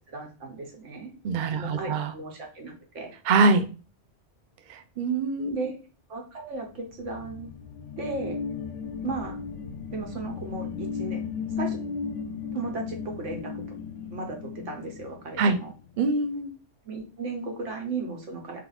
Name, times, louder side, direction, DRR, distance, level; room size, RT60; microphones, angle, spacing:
voice 1, 0.1-1.1 1.6-3.1 5.5-5.8 6.1-7.5 8.0-8.4 9.0-9.4 9.9-11.2 11.6-11.8 12.5-13.6 14.1-15.7 16.8-18.6, right 3 dB, 85° right, 2 dB, 1.4 m, -35 dB
voice 2, 1.2-2.1 3.3-3.6 4.7-5.6 15.4-15.6 16.0-16.5, right 3 dB, 60° right, 9 dB, 0.5 m, -24 dB
sound 1, 6.7-16.0, left 6 dB, 90° left, 0.9 m, -36 dB
3.5 x 2.8 x 3.9 m, 0.35 s
omnidirectional pair, 1.2 m